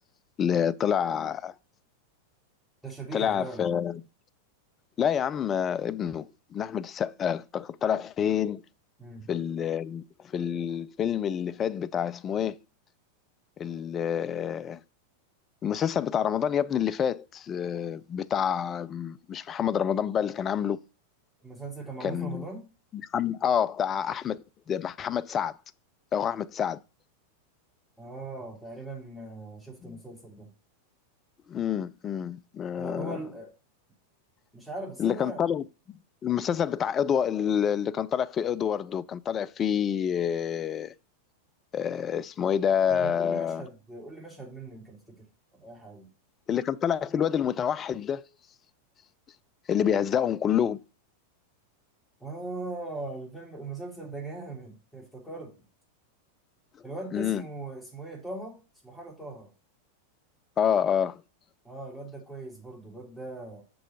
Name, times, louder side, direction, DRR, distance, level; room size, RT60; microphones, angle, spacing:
voice 1, 0.4-1.5 3.1-4.0 5.0-8.6 9.3-12.6 13.6-14.8 15.6-20.8 22.0-22.5 22.9-24.4 24.7-25.6 26.1-26.8 29.8-30.0 31.5-33.2 35.0-40.9 41.7-43.6 46.5-48.2 49.7-50.8 57.1-57.4 60.6-61.2, left 8 dB, 25° left, 0.4 m, -28 dB
voice 2, 2.8-3.8 9.0-9.3 21.4-22.7 28.0-30.5 32.7-33.5 34.5-35.4 42.9-45.2 45.5-46.1 52.2-55.6 56.8-58.6 58.8-59.5 61.6-63.6, right 2 dB, 5° left, 2.8 m, -40 dB
6.2 x 5.4 x 4.2 m
figure-of-eight pair, 90°, 0 cm